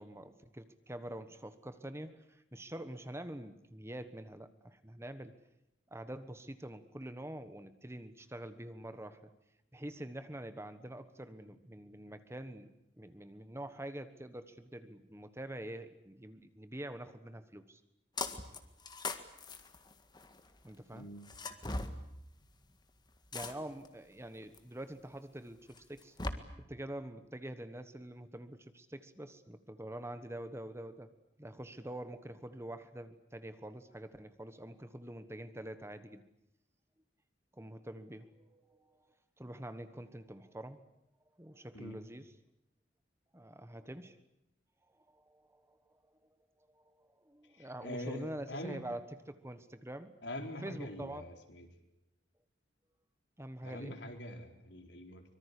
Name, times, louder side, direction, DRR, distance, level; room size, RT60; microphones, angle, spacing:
voice 1, 0.0-5.4 5.9-9.3 9.7-17.8 20.6-21.1 23.3-31.1 31.4-36.2 37.5-39.1 39.4-40.8 41.4-42.3 43.3-44.2 44.9-46.2 46.7-50.1 50.6-51.2 53.4-54.0, right 1 dB, 15° right, 11 dB, 1.3 m, -46 dB
sound 1, 18.2-18.6 18.9-20.4 21.3-21.9 23.3-23.9 24.5-24.6 25.8-26.3, left 3 dB, 25° left, 1.8 m, -39 dB
voice 2, 20.9-21.3 41.7-42.0 47.5-49.0 50.2-51.7 53.6-55.2, left 1 dB, 70° left, 5 dB, 4.2 m, -44 dB
24.5 x 23.0 x 8.4 m, 0.83 s
head